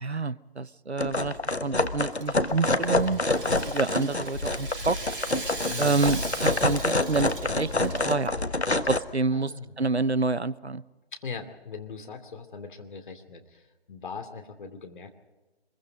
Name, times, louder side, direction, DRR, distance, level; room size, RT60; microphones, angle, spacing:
voice 1, 0.0-3.2 3.6-5.0 5.8-8.4 8.9-9.5 9.8-10.8, right 3 dB, 90° right, 19 dB, 0.8 m, -28 dB
sound 1, 1.0-9.0, left 2 dB, 90° left, 1.3 m, -27 dB
Rattle (instrument), 2.0-8.3, right 3 dB, 55° right, 4.4 m, -39 dB
voice 2, 3.1-3.6 5.7-6.0 9.3-9.7 11.1-15.1, left 5 dB, 50° left, 6 dB, 2.6 m, -40 dB
24.0 x 22.0 x 5.2 m, 1.2 s
figure-of-eight pair, 140°, 32 cm